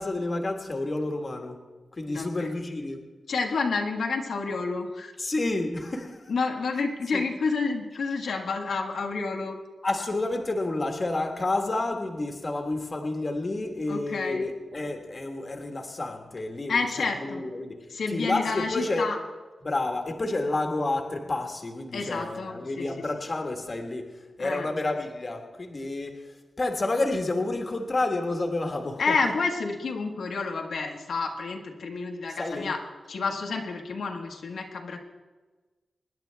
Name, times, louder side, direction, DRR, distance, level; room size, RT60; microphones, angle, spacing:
voice 1, 0.0-1.6 1.9-3.0 5.2-6.3 7.1-7.2 9.8-17.8 18.1-19.1 19.6-29.3 32.3-32.7, left 2 dB, 30° left, 3 dB, 1.4 m, -30 dB
voice 2, 2.1-2.5 3.3-5.1 6.3-9.6 13.9-14.4 16.7-17.4 17.9-19.2 21.9-22.9 24.4-24.7 29.0-32.8 33.1-35.0, left 4 dB, 75° left, 1 dB, 1.4 m, -29 dB
24.5 x 10.5 x 3.4 m, 1.3 s
wide cardioid pair, 165°, 0 cm